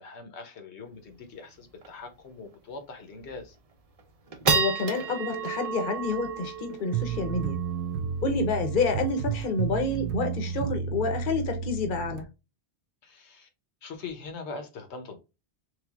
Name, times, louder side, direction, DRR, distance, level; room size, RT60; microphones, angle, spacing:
voice 1, 0.0-3.6 8.8-8.9 13.0-13.5 13.8-15.2, left 4 dB, 85° left, 1.1 m, -42 dB
sound 1, 0.9-1.0 1.3-1.4 1.8-2.1 2.5-2.6 3.2-3.5 4.0-10.6, right 5 dB, 45° right, 0.6 m, -33 dB
voice 2, 4.5-7.6 8.2-12.3, left 3 dB, 55° left, 0.9 m, -28 dB
sound 2, 6.9-12.2, right 7 dB, 85° right, 0.9 m, -32 dB
3.4 x 3.3 x 2.3 m
omnidirectional pair, 1.1 m